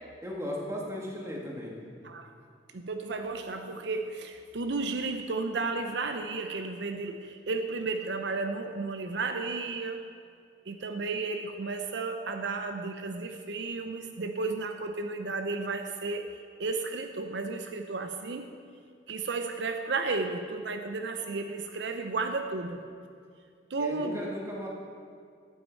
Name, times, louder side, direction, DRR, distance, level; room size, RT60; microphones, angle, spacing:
voice 1, 0.2-1.8 23.8-24.7, equal, 15° right, -3 dB, 1.8 m, -36 dB
voice 2, 2.7-10.0 10.7-16.2 16.6-18.5 19.1-22.8 23.7-24.2, right 3 dB, 70° right, 6 dB, 0.6 m, -33 dB
12.0 x 9.6 x 4.5 m, 2.2 s
head